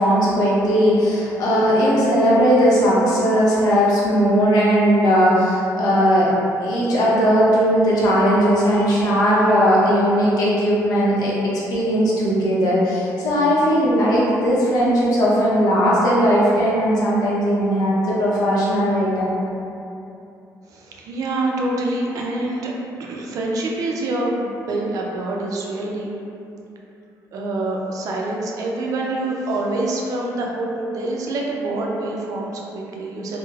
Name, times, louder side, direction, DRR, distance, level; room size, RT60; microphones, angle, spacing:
voice 1, 0.0-6.3 6.6-11.4 11.7-19.3, equal, 80° left, -6 dB, 0.7 m, -18 dB
voice 2, 20.7-22.7 23.0-26.1 27.3-33.4, right 2 dB, 65° right, -2 dB, 0.4 m, -26 dB
3.1 x 2.0 x 2.3 m, 2.7 s
cardioid pair, 135°, 7 cm